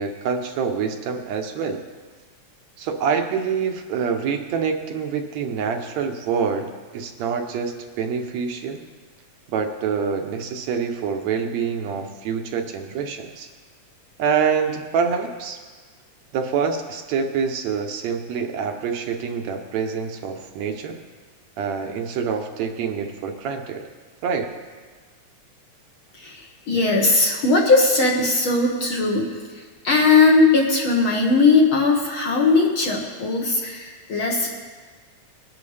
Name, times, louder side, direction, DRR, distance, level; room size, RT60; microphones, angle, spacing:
voice 1, 0.0-1.8 2.8-8.8 9.5-13.5 14.2-15.6 16.3-21.0 21.6-23.9 24.2-24.5, right 6 dB, 75° right, 4 dB, 2.0 m, -26 dB
voice 2, 26.1-29.3 29.5-34.5, left 3 dB, 55° left, -1 dB, 1.7 m, -19 dB
20.0 x 11.0 x 3.3 m, 1.5 s
omnidirectional pair, 3.4 m